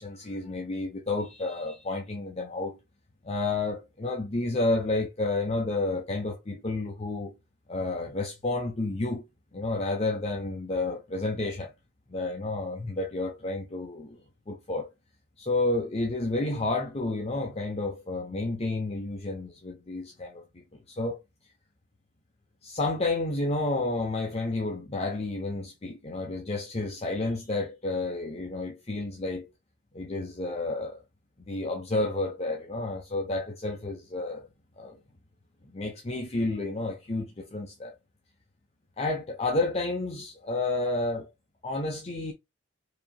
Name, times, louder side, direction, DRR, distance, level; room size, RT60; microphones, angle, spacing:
voice 1, 0.0-2.8 3.2-7.3 7.7-9.2 9.5-11.7 12.1-14.2 14.5-14.9 15.4-21.2 22.6-29.5 29.9-31.0 31.5-34.5 34.8-35.0 35.6-37.9 39.0-41.3 41.6-42.3, left 2 dB, 35° left, 0.7 m, -30 dB
4.9 x 2.9 x 2.3 m
head